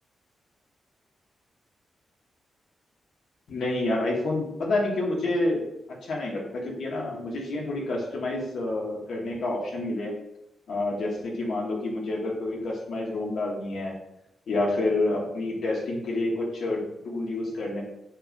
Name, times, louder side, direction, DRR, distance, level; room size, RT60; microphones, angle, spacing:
voice 1, 3.5-10.2 10.7-14.0 14.5-17.8, left 2 dB, 80° left, -2 dB, 1.9 m, -28 dB
8.5 x 5.4 x 2.6 m, 0.84 s
cardioid pair, 85°, 0 cm